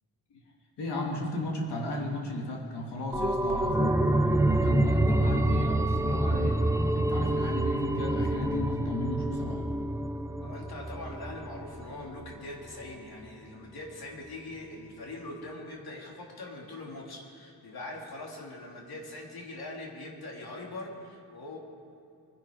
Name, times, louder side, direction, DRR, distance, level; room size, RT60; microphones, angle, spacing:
voice 1, 0.8-4.0 4.5-6.6 6.9-9.6, left 1 dB, 90° left, -1 dB, 2.9 m, -35 dB
sound 1, 3.1-12.5 12.8-12.9, right 1 dB, 5° right, 0.5 m, -27 dB
voice 2, 10.4-21.6, left 2 dB, 65° left, -1 dB, 3.0 m, -42 dB
23.0 x 11.0 x 5.1 m, 2.6 s
wide cardioid pair, 155°, 40 cm